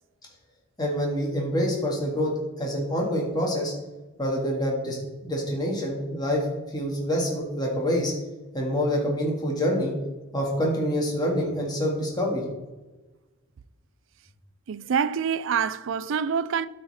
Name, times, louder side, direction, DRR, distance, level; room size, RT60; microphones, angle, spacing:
voice 1, 0.8-2.3 2.6-3.7 4.2-6.5 6.7-8.1 8.5-9.9 10.3-12.4, equal, 20° left, 1.9 m, -26 dB
voice 2, 14.7-16.7, right 7 dB, 55° right, 0.4 m, -26 dB
13.0 x 4.3 x 4.2 m
head